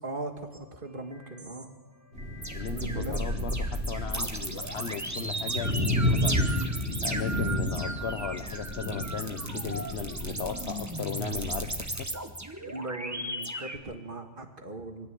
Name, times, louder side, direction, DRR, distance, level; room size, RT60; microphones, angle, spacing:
voice 1, 0.0-1.7 2.7-3.6 12.6-15.1, right 2 dB, 50° right, 5 dB, 2.1 m, -39 dB
sound 1, 0.5-0.6 1.1-1.6 2.2-13.8, right 2 dB, 15° right, 1.2 m, -36 dB
sound 2, 2.1-11.7, left 1 dB, 75° right, 4.8 m, -32 dB
voice 2, 2.5-6.5 7.0-11.7, left 6 dB, 70° left, 7 dB, 1.2 m, -36 dB
23.5 x 16.0 x 8.3 m, 1.2 s
omnidirectional pair, 1.1 m